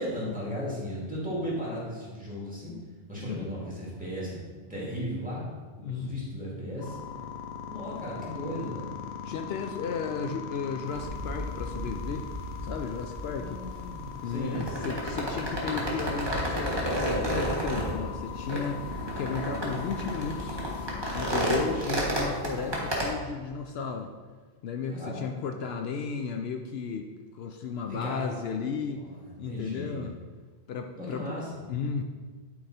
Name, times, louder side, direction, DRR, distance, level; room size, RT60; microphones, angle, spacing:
voice 1, 0.0-2.7 3.1-5.5 5.9-7.0 7.7-9.0 13.3-14.7 18.8-19.7 21.6-22.0 24.9-25.3 27.9-28.4 28.8-29.2 29.5-30.0 31.0-31.5, equal, 5° right, -6 dB, 2.4 m, -36 dB
voice 2, 3.2-3.5 5.8-6.2 9.2-12.3 12.6-13.6 14.2-20.7 21.1-24.1 24.6-29.0 29.4-30.1 30.7-31.4 31.7-32.0, left 5 dB, 75° left, 5 dB, 0.8 m, -34 dB
sound 1, 6.8-21.9, left 7 dB, 90° left, 1.1 m, -40 dB
sound 2, 10.9-23.1, equal, 25° right, 1.4 m, -32 dB
10.0 x 4.7 x 4.2 m, 1.5 s
omnidirectional pair, 1.1 m